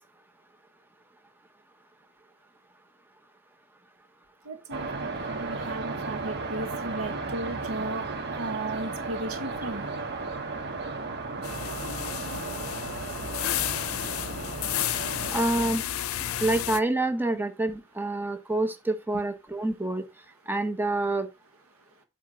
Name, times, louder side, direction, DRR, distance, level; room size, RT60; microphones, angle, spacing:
voice 1, 4.4-8.1 8.4-9.8 14.2-14.3, right 2 dB, 75° right, 1.6 m, -35 dB
sound 1, 4.7-15.4, right 3 dB, 55° right, 1.7 m, -35 dB
sound 2, 11.4-16.8, left 11 dB, 75° left, 0.6 m, -32 dB
voice 2, 15.3-15.8 16.4-20.0 20.5-21.3, right 2 dB, 10° right, 1.1 m, -27 dB
8.3 x 3.5 x 5.5 m
head